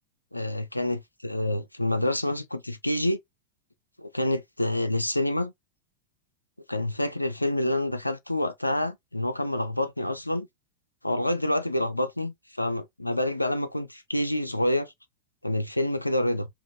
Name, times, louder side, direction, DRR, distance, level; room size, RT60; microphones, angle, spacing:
voice 1, 0.3-3.2 4.0-5.5 6.7-10.5 11.0-14.9 15.4-16.5, left 1 dB, 85° left, 0.4 m, -27 dB
5.0 x 2.5 x 2.6 m
figure-of-eight pair, 90°, 0 cm